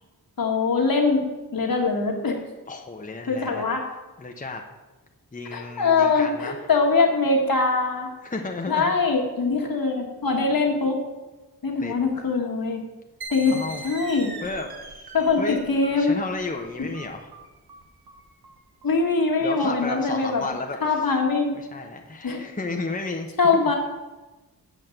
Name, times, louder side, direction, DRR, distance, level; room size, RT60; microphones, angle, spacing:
voice 1, 0.4-2.4 3.3-3.9 5.5-8.1 8.7-11.0 11.6-12.8 13.3-13.6 13.8-14.3 15.1-16.2 16.8-16.9 18.8-20.4 20.8-21.6 22.2-22.5 23.4-23.8, left 4 dB, 60° left, 1 dB, 1.8 m, -22 dB
voice 2, 2.7-3.6 4.2-4.6 5.3-6.6 8.2-8.9 11.8-11.9 13.5-13.8 14.4-15.1 15.4-15.6 16.0-17.3 19.4-21.1 21.5-23.3 23.6-23.7, left 3 dB, 20° left, 2 dB, 0.9 m, -33 dB
sound 1, 13.2-20.4, right 2 dB, 70° right, 1.4 m, -42 dB
8.0 x 5.2 x 7.6 m, 1.1 s
wide cardioid pair, 70°, 38 cm